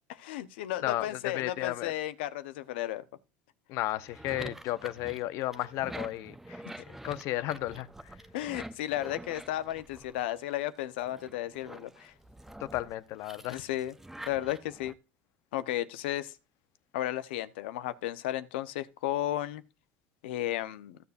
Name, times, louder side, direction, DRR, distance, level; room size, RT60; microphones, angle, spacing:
voice 1, 0.1-3.0 6.6-6.8 8.3-12.1 13.5-13.9 14.3-14.9 15.5-16.3 16.9-19.6 20.2-21.0, left 13 dB, 90° left, 1.0 m, -34 dB
voice 2, 0.8-1.9 3.7-6.6 7.0-8.2 12.6-13.6, left 15 dB, 65° left, 0.9 m, -34 dB
sound 1, 3.9-10.6 11.0-14.9, right 1 dB, 5° right, 0.9 m, -46 dB
15.0 x 7.2 x 2.6 m
supercardioid pair, 110°, 6 cm